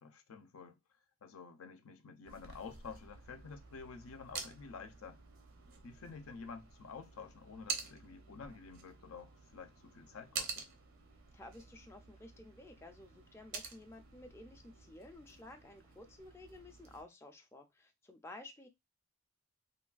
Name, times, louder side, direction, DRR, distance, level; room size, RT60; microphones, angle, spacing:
voice 1, 0.0-0.8 1.2-5.2 5.8-10.7, left 5 dB, 85° left, 0.5 m, -50 dB
sound 1, 2.2-17.0, right 5 dB, 65° right, 0.6 m, -49 dB
voice 2, 11.3-18.7, left 2 dB, 10° left, 0.3 m, -53 dB
3.1 x 2.3 x 2.3 m
head